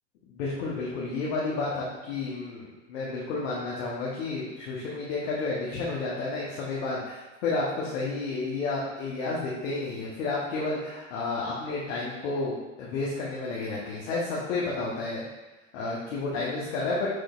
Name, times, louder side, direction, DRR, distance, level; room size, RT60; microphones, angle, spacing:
voice 1, 0.3-15.3 15.7-17.1, left 3 dB, 75° left, -5 dB, 1.0 m, -31 dB
6.3 x 3.1 x 2.4 m, 1.2 s
hypercardioid pair, 85°, 39 cm